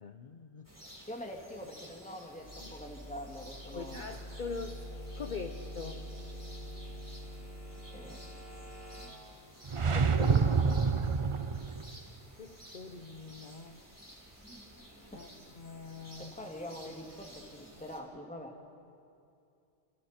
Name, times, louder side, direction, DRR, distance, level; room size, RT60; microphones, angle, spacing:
voice 1, 0.0-0.7 2.6-2.7 3.7-4.8 5.2-6.1 12.4-13.8 15.1-15.3 15.5-16.3, left 4 dB, 50° left, 5 dB, 1.0 m, -43 dB
sound 1, 0.6-18.0, equal, 15° right, 3.6 m, -54 dB
voice 2, 0.8-4.1 7.9-8.3 9.9-10.7 15.1-15.3 16.1-18.6, left 1 dB, 5° left, 1 dB, 2.2 m, -44 dB
sound 2, 2.4-9.1, equal, 80° right, 5.7 m, -45 dB
sound 3, 9.7-11.9, right 5 dB, 35° right, 0.6 m, -27 dB
29.0 x 28.0 x 4.4 m, 2.5 s
omnidirectional pair, 1.1 m